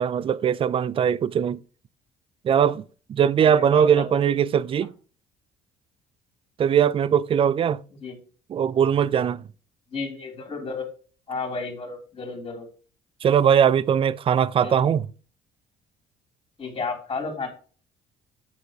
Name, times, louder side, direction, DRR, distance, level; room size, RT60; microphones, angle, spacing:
voice 1, 0.0-1.6 2.4-2.8 3.1-4.9 6.6-7.8 8.5-9.4 13.2-15.1, right 8 dB, 35° right, 0.4 m, -20 dB
voice 2, 3.4-4.0 8.0-8.2 9.9-10.8 11.3-12.7 14.6-14.9 16.6-17.5, left 4 dB, 30° left, 3.1 m, -32 dB
8.5 x 3.9 x 4.7 m
cardioid pair, 110°, 17 cm